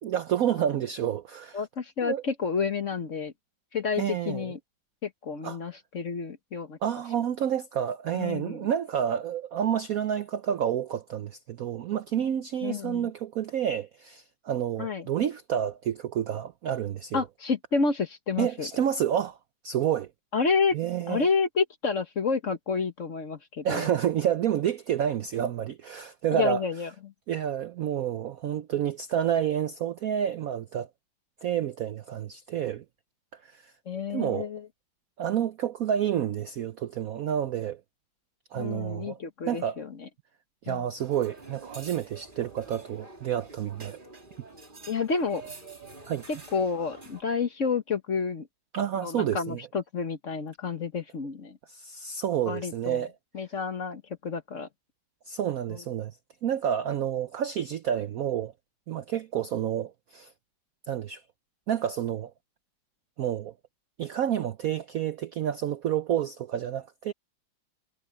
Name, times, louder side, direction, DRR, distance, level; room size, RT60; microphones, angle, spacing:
voice 1, 0.0-1.7 2.0-2.2 4.0-4.5 5.4-5.6 6.8-17.2 18.4-19.4 19.6-20.1 20.7-21.3 23.6-26.6 27.3-30.9 31.4-32.8 33.4-33.7 34.1-34.5 35.2-37.8 38.5-39.2 39.5-39.8 40.6-44.0 46.1-46.3 48.7-49.6 51.7-53.1 55.3-56.2 56.4-58.5 58.9-60.3 60.9-61.2 61.7-62.3 63.2-63.5 64.0-67.1, right 9 dB, 70° right, 0.8 m, -29 dB
voice 2, 1.5-3.3 3.7-4.6 5.0-6.8 8.1-8.7 12.6-13.1 14.8-15.1 17.1-18.7 20.3-20.8 21.1-23.8 26.3-27.1 33.9-34.6 38.5-40.1 40.7-40.8 44.9-45.4 46.3-48.5 49.0-51.6 52.5-53.0 53.3-54.7 55.7-55.8, left 5 dB, 45° left, 1.3 m, -30 dB
sound 1, 41.0-47.2, right 3 dB, 25° right, 2.9 m, -47 dB
omnidirectional pair, 2.1 m